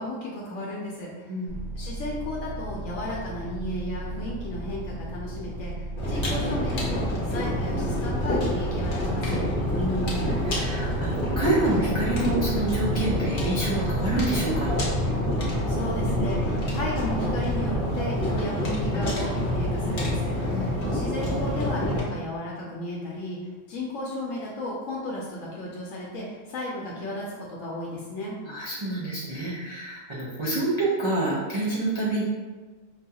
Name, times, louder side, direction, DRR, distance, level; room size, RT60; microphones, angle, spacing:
voice 1, 0.0-1.3 1.8-7.0 7.3-9.4 15.7-23.4 23.7-28.3, left 1 dB, 80° left, -3 dB, 1.0 m, -34 dB
voice 2, 1.3-1.6 9.8-14.7 20.5-20.8 28.4-32.2, right 2 dB, 35° right, -8 dB, 0.5 m, -28 dB
sound 1, 1.5-17.9, right 1 dB, 70° right, 1.6 m, -36 dB
sound 2, 6.0-22.0, equal, 50° left, 1.0 m, -27 dB
4.9 x 2.3 x 2.8 m, 1.3 s
omnidirectional pair, 1.3 m